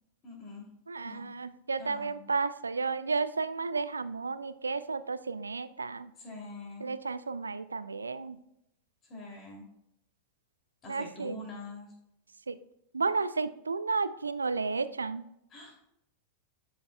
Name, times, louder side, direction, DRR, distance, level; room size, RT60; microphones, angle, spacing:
voice 1, 0.2-0.7 1.0-1.3 1.8-2.2 6.1-6.9 9.0-9.7 10.8-11.9 15.5-15.7, left 2 dB, 30° left, -1 dB, 2.9 m, -44 dB
voice 2, 0.9-6.1 6.8-8.4 10.9-11.4 12.5-12.6 12.9-15.2, right 4 dB, 75° right, 14 dB, 0.4 m, -32 dB
12.0 x 5.4 x 2.3 m, 0.80 s
figure-of-eight pair, 90°, 0 cm